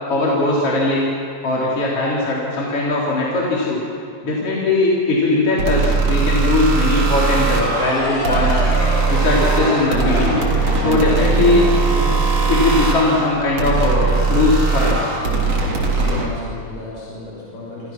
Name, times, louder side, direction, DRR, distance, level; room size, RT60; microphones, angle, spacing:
voice 1, 0.1-1.1 1.4-3.8 4.2-8.6 9.1-10.4 10.8-11.7 12.5-15.1, left 2 dB, 50° left, -5 dB, 4.8 m, -19 dB
sound 1, 5.6-16.3, right 4 dB, 55° right, 4.4 m, -19 dB
sound 2, 7.7-13.0, equal, 20° left, 8.2 m, -26 dB
voice 2, 15.6-17.9, left 2 dB, 75° left, -6 dB, 7.6 m, -35 dB
29.5 x 27.0 x 6.1 m, 2.4 s
omnidirectional pair, 3.4 m